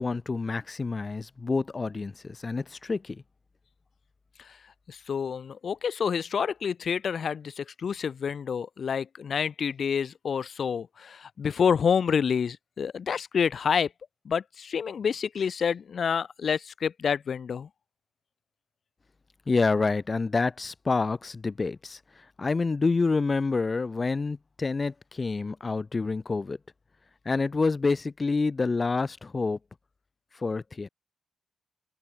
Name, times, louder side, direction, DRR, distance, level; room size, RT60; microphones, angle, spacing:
voice 1, 0.0-3.2 19.5-26.6 27.2-29.6 30.3-30.9, left 4 dB, 25° left, 0.8 m, -28 dB
voice 2, 4.9-13.9 14.2-17.7, left 7 dB, 50° left, 0.9 m, -28 dB
wide cardioid pair, 140°, 0 cm